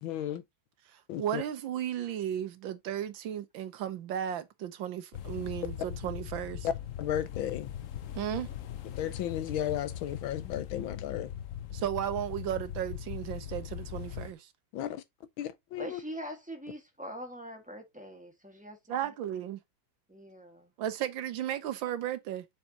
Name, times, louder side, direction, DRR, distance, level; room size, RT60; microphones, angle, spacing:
voice 1, 0.0-0.4 1.1-1.4 6.6-7.7 9.0-11.3 14.7-15.0 15.4-16.0, left 11 dB, 80° left, 1.6 m, -34 dB
voice 2, 0.9-6.7 8.1-8.5 11.7-14.5 18.9-19.6 20.8-22.4, right 11 dB, 75° right, 1.5 m, -35 dB
sound 1, 5.1-14.3, left 10 dB, 65° left, 0.8 m, -40 dB
voice 3, 15.8-18.8 20.1-20.7, equal, 5° right, 1.3 m, -43 dB
7.1 x 5.4 x 2.8 m
omnidirectional pair, 2.2 m